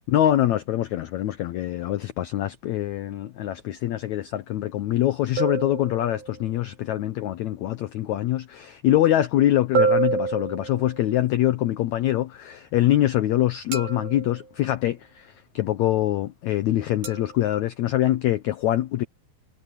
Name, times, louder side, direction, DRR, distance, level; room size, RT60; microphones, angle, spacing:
voice 1, 0.1-19.0, left 13 dB, 80° left, 1.7 m, -24 dB
sound 1, 5.4-6.4 9.7-11.1 13.7-14.5 17.0-17.3, right 5 dB, 85° right, 9.7 m, -27 dB
omnidirectional pair, 4.2 m